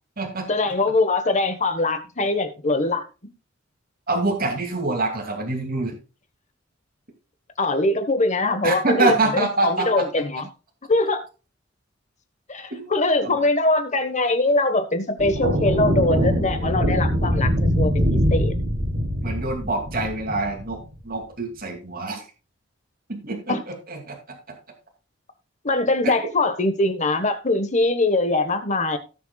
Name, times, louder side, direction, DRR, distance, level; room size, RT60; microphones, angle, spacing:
voice 1, 0.5-3.0 7.6-10.5 10.9-11.2 12.5-18.5 23.5-23.6 25.6-29.0, left 2 dB, 40° left, 1.3 m, -22 dB
voice 2, 4.1-5.9 8.6-10.0 12.7-13.4 19.2-20.8 21.0-22.3 23.1-24.4 26.0-26.1, right 2 dB, 50° right, 2.5 m, -26 dB
sound 1, 15.2-20.8, equal, 65° right, 3.1 m, -23 dB
17.5 x 7.0 x 2.3 m
head